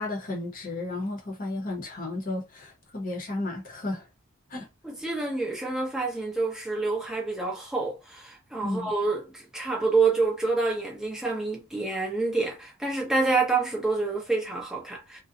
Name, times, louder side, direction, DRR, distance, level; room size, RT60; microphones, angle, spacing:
voice 1, 0.0-4.1 4.5-4.7 8.6-8.9, left 2 dB, 40° left, 0.7 m, -33 dB
voice 2, 4.8-15.2, right 3 dB, 5° right, 0.6 m, -27 dB
2.5 x 2.1 x 2.6 m
head